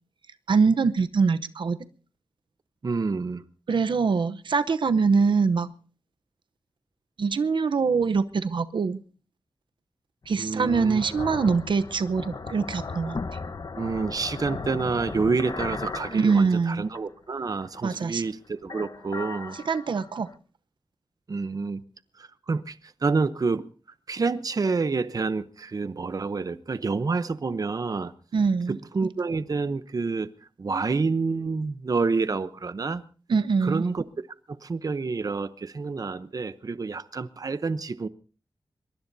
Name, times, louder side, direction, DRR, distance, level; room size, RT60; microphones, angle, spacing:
voice 1, 0.5-1.8 3.7-5.7 7.2-9.0 10.3-13.2 16.1-16.8 17.8-18.2 19.7-20.3 28.3-28.8 33.3-33.9, right 5 dB, 80° right, 0.8 m, -23 dB
voice 2, 2.8-3.4 10.4-11.0 13.8-19.6 21.3-21.8 22.2-23.6 24.1-28.1 28.7-30.3 30.6-33.0 33.6-34.0 34.6-38.1, right 4 dB, 50° right, 0.7 m, -28 dB
sound 1, 10.2-17.1 17.5-18.3 18.6-20.3, left 4 dB, 55° left, 1.0 m, -37 dB
23.5 x 22.0 x 2.7 m
wide cardioid pair, 100°, 8 cm